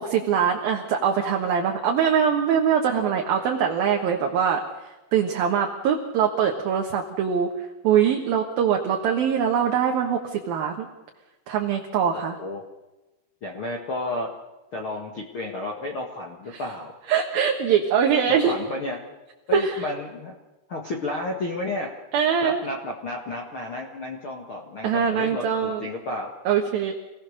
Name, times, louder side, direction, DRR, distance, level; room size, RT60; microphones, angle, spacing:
voice 1, 0.0-4.6 5.1-7.5 7.8-10.9 11.5-12.4 16.5-16.6 17.1-18.5 19.5-19.7 22.1-22.6 24.8-25.9 26.5-26.9, right 8 dB, 65° right, 1 dB, 2.8 m, -22 dB
voice 2, 12.1-12.6 13.4-14.3 14.7-16.9 18.3-19.0 19.5-20.3 20.7-21.9 22.4-26.3, left 2 dB, 75° left, 1 dB, 1.2 m, -32 dB
27.5 x 18.0 x 6.6 m, 1.1 s
omnidirectional pair, 5.3 m